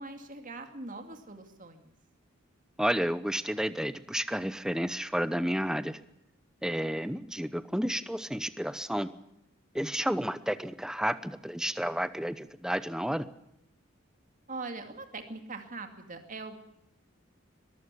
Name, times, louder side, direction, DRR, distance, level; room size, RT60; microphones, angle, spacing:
voice 1, 0.0-1.9 14.5-16.5, right 3 dB, 40° right, 6 dB, 2.4 m, -42 dB
voice 2, 2.8-6.0 6.6-9.1 9.7-13.3, equal, 5° right, 14 dB, 0.8 m, -31 dB
22.0 x 14.5 x 8.3 m, 0.82 s
head